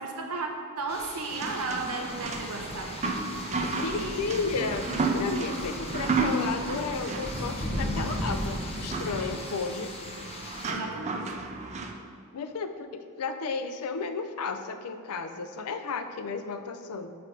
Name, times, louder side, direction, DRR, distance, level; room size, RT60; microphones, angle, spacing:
voice 1, 0.0-2.9 3.5-4.5 10.6-11.3, right 3 dB, 85° right, 3 dB, 0.8 m, -35 dB
sound 1, 0.9-10.7, left 3 dB, 25° left, 0.5 m, -44 dB
sound 2, 1.3-11.9, right 3 dB, 30° right, 0.4 m, -33 dB
sound 3, 2.1-9.3, equal, ahead, 1.0 m, -36 dB
voice 2, 3.8-4.9 5.1-9.9 12.3-17.2, left 4 dB, 80° left, 8 dB, 0.4 m, -33 dB
4.9 x 4.8 x 4.8 m, 2.3 s
head